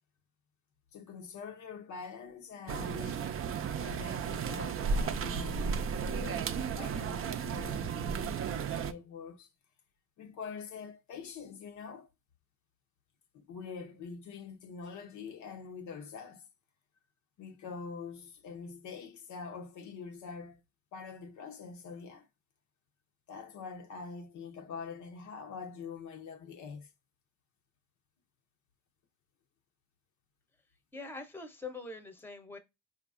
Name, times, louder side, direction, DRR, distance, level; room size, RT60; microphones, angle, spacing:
voice 1, 0.9-3.2 3.7-8.5 8.8-9.5 10.2-12.1 13.3-16.5 17.4-20.6 20.9-22.3 23.3-26.9, left 5 dB, 75° left, 0.7 m, -45 dB
sound 1, 2.7-8.9, right 6 dB, 45° right, 0.4 m, -34 dB
voice 2, 30.9-32.6, left 3 dB, 5° left, 0.7 m, -43 dB
4.5 x 2.5 x 2.4 m
cardioid pair, 90°, 30 cm